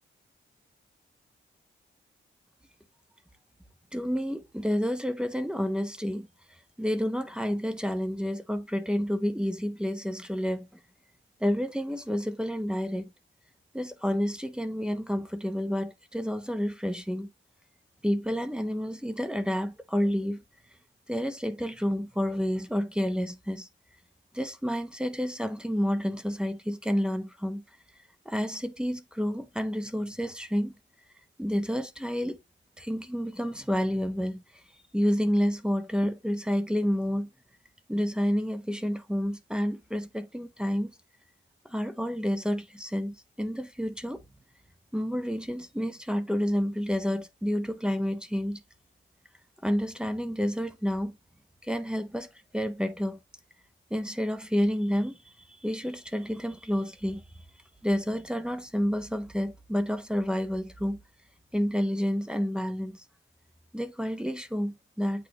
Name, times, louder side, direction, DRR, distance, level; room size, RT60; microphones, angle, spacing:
voice 1, 3.9-6.3 6.8-10.7 11.4-13.1 13.7-17.3 18.0-20.4 21.1-23.7 24.3-27.6 28.2-30.7 31.4-32.4 32.8-34.4 34.9-37.3 37.9-40.9 41.6-44.2 44.9-48.6 49.6-51.2 51.6-52.3 52.5-53.2 53.9-57.2 57.8-61.0 61.5-63.0 63.7-65.3, equal, 5° right, 0.8 m, -29 dB
8.5 x 3.8 x 2.9 m
wide cardioid pair, 100°, 21 cm